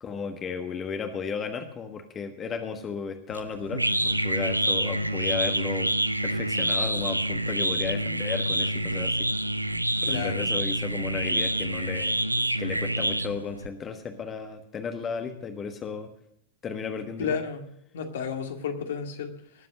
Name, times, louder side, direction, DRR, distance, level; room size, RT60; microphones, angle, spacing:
voice 1, 0.0-5.9 6.2-9.3 10.0-12.2 12.6-16.1 16.6-17.4, left 5 dB, 25° left, 7 dB, 1.3 m, -34 dB
sound 1, 3.3-13.7, right 1 dB, 85° right, 0.6 m, -27 dB
voice 2, 10.0-10.4 17.2-17.6 17.9-19.3, left 6 dB, 60° left, 4 dB, 2.0 m, -31 dB
19.5 x 7.6 x 6.4 m, 0.74 s
figure-of-eight pair, 90°, 0 cm